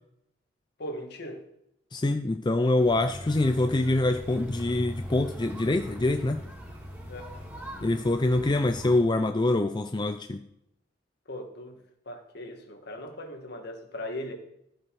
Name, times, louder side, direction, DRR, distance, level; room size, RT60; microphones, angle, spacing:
voice 1, 0.8-1.4 7.1-7.3 11.3-11.8 12.1-14.3, left 1 dB, 55° left, 4 dB, 1.9 m, -38 dB
voice 2, 1.9-6.4 7.8-10.4, left 2 dB, 25° left, 7 dB, 0.5 m, -25 dB
sound 1, 2.7-9.0, equal, 10° right, 2.7 m, -40 dB
14.0 x 7.6 x 4.8 m, 0.80 s
head